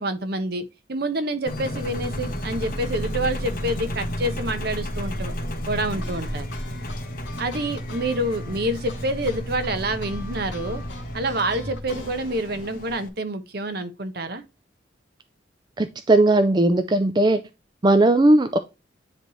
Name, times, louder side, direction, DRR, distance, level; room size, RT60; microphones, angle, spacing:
voice 1, 0.0-5.3 5.7-6.5 7.4-10.8 11.1-14.4, right 1 dB, 60° right, 1.1 m, -27 dB
Engine, 1.5-13.1, equal, 50° left, 1.3 m, -32 dB
sound 1, 5.9-12.7, left 3 dB, 75° left, 2.4 m, -44 dB
voice 2, 15.8-17.4 17.8-18.6, right 2 dB, 25° right, 0.4 m, -17 dB
9.9 x 3.3 x 3.1 m
head